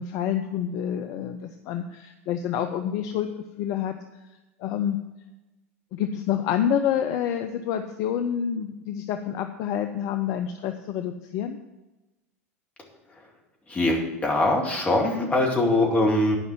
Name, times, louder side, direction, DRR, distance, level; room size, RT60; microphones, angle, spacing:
voice 1, 0.0-3.3 3.6-4.0 4.6-5.0 5.9-11.6, left 9 dB, 45° left, 7 dB, 0.6 m, -28 dB
voice 2, 13.7-16.4, left 2 dB, 15° left, 0 dB, 2.4 m, -22 dB
11.0 x 5.4 x 7.6 m, 1.0 s
figure-of-eight pair, 80°, 8 cm